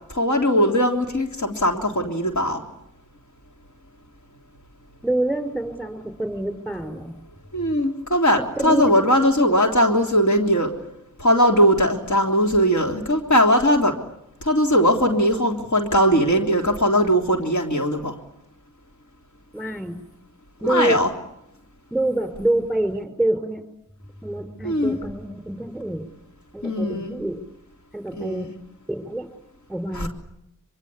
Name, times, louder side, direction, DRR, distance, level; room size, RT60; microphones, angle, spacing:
voice 1, 0.1-2.6 7.5-10.7 11.2-13.9 14.4-18.2 20.6-21.1 24.6-25.0 26.6-27.1 28.1-28.5 29.9-30.1, equal, 65° left, 2 dB, 3.5 m, -19 dB
voice 2, 5.0-7.2 8.6-9.0 19.5-20.0 20.6-21.0 21.9-23.6 24.2-26.0 26.5-27.4 27.9-28.5 28.9-29.3 29.7-30.1, right 1 dB, 5° left, 7 dB, 5.2 m, -26 dB
24.0 x 24.0 x 8.6 m, 0.83 s
wide cardioid pair, 70°, 31 cm